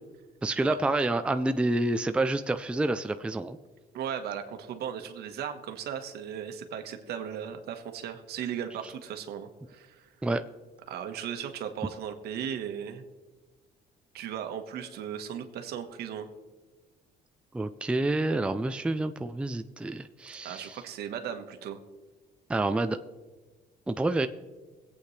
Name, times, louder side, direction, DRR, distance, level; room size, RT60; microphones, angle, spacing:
voice 1, 0.4-3.6 10.2-10.4 17.5-20.8 22.5-23.0 23.9-24.3, right 2 dB, 5° right, 9 dB, 0.4 m, -28 dB
voice 2, 3.9-10.1 10.9-13.0 14.1-16.3 20.4-21.8, right 8 dB, 70° right, 7 dB, 1.3 m, -37 dB
22.0 x 8.6 x 3.2 m, 1.3 s
cardioid pair, 110°, 17 cm